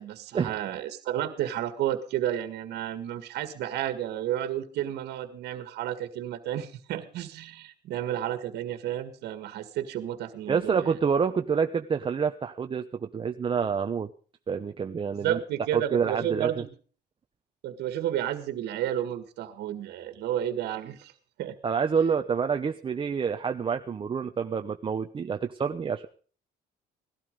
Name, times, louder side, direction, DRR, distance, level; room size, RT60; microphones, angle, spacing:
voice 1, 0.0-11.0 15.2-16.7 17.6-21.1 21.4-21.5, right 11 dB, 75° right, 10 dB, 1.8 m, -31 dB
voice 2, 10.5-14.1 14.5-15.4 15.7-16.6 21.6-26.1, right 6 dB, 30° right, 6 dB, 0.9 m, -27 dB
17.5 x 12.5 x 5.3 m, 0.43 s
cardioid pair, 110°, 17 cm